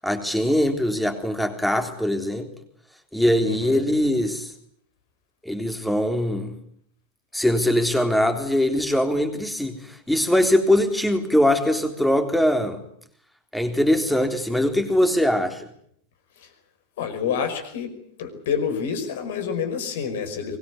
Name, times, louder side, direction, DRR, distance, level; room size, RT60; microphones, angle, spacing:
voice 1, 0.0-2.5 3.1-4.5 5.4-6.6 7.3-12.8 13.5-15.6, left 1 dB, ahead, 7 dB, 3.6 m, -22 dB
voice 2, 3.4-3.8 16.4-16.5 17.0-17.9 18.2-20.6, left 7 dB, 55° left, 8 dB, 5.3 m, -28 dB
24.5 x 21.0 x 9.6 m, 0.68 s
figure-of-eight pair, 90°, 0 cm